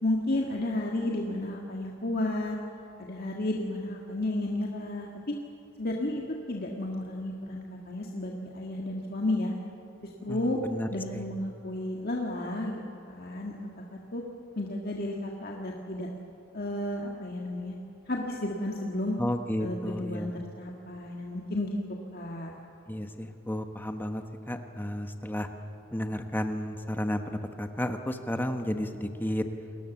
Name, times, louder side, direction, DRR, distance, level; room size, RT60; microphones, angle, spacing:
voice 1, 0.0-2.6 3.0-5.3 5.8-6.2 6.5-9.5 10.2-10.6 10.9-12.8 13.1-13.7 14.1-14.2 14.6-16.1 16.5-17.8 18.1-19.2 19.6-20.3 20.6-21.8 22.1-22.5, left 1 dB, 50° left, -1 dB, 1.8 m, -32 dB
voice 2, 10.3-10.9 11.1-11.2 19.2-20.4 22.9-25.5 25.9-29.4, left 1 dB, 10° left, 6 dB, 1.3 m, -32 dB
29.0 x 21.0 x 7.2 m, 2.8 s
head